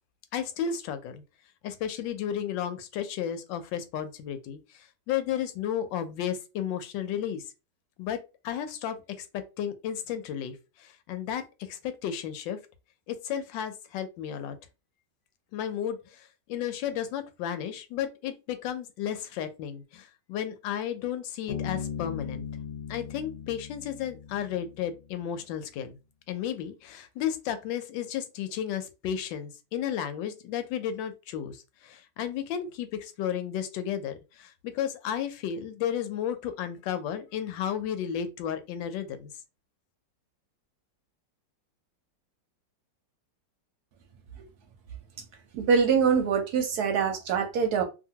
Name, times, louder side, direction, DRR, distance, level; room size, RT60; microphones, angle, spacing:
voice 1, 0.3-1.2 1.6-7.4 8.0-8.2 8.4-12.6 13.1-14.6 15.5-22.4 22.9-26.0 26.3-39.3, left 9 dB, 85° left, 1.3 m, -33 dB
Bass guitar, 21.5-24.9, left 7 dB, 55° left, 0.8 m, -38 dB
voice 2, 45.5-47.8, right 6 dB, 70° right, 1.0 m, -24 dB
2.8 x 2.5 x 2.7 m
omnidirectional pair, 2.0 m